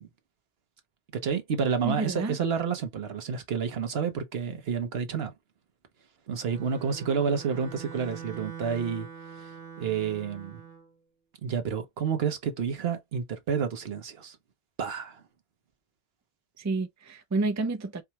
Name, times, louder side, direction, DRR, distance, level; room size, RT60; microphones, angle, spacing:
voice 1, 1.1-5.3 6.3-9.1 9.4-9.5 9.8-10.6 11.4-14.4 14.8-15.2, right 6 dB, 75° right, 1.1 m, -29 dB
voice 2, 1.8-2.4 16.6-18.0, right 3 dB, 25° right, 0.4 m, -29 dB
Bowed string instrument, 6.4-10.9, right 7 dB, 40° right, 1.1 m, -44 dB
4.7 x 2.2 x 2.9 m
omnidirectional pair, 1.0 m